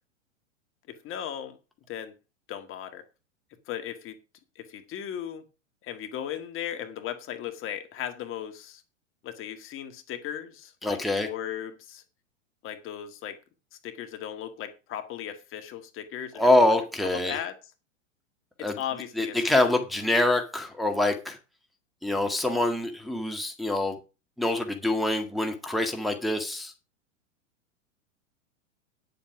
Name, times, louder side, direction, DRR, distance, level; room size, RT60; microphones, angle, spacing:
voice 1, 0.9-1.6 1.9-2.1 2.5-3.0 3.7-4.2 4.6-5.4 5.8-8.8 9.2-12.0 12.6-13.4 13.7-16.8 17.2-17.6 18.6-19.6, left 10 dB, 35° left, 1.9 m, -37 dB
voice 2, 10.8-11.3 16.4-17.4 18.6-18.7 19.2-21.4 22.0-24.0 24.4-26.7, left 1 dB, ahead, 1.8 m, -25 dB
9.8 x 8.0 x 6.1 m
hypercardioid pair, 100°, 38 cm